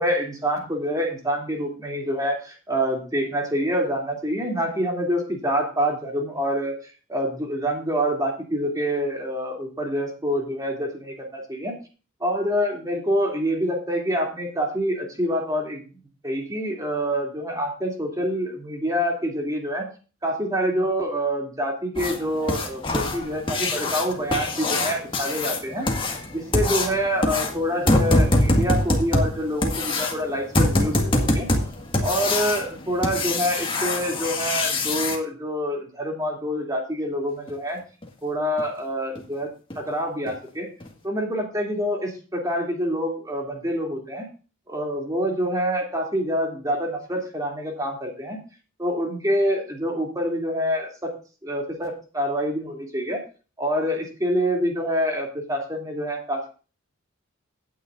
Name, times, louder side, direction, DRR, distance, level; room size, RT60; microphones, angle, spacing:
voice 1, 0.0-6.7 7.1-11.8 12.2-15.8 16.2-19.9 20.2-25.9 26.3-31.5 32.0-37.8 38.2-40.7 41.0-44.3 44.7-48.4 48.8-51.1 51.4-53.2 53.6-56.5, equal, 15° right, 0 dB, 3.0 m, -26 dB
sound 1, 22.0-35.2 37.5-37.6 38.0-38.1 38.6-38.7 39.2-39.3 39.7-39.9 40.3-40.4 40.8-40.9, left 1 dB, 25° left, 1.9 m, -24 dB
16.5 x 9.2 x 2.6 m, 0.35 s
head